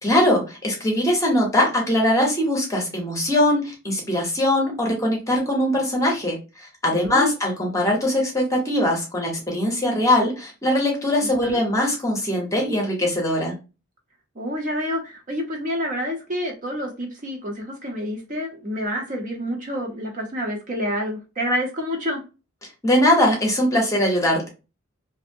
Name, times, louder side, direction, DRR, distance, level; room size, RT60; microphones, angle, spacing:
voice 1, 0.0-13.5 22.8-24.5, left 1 dB, 15° left, -1 dB, 0.7 m, -21 dB
voice 2, 11.2-11.6 14.4-22.2, equal, 40° right, 1 dB, 0.6 m, -28 dB
2.6 x 2.0 x 2.5 m, 0.30 s
head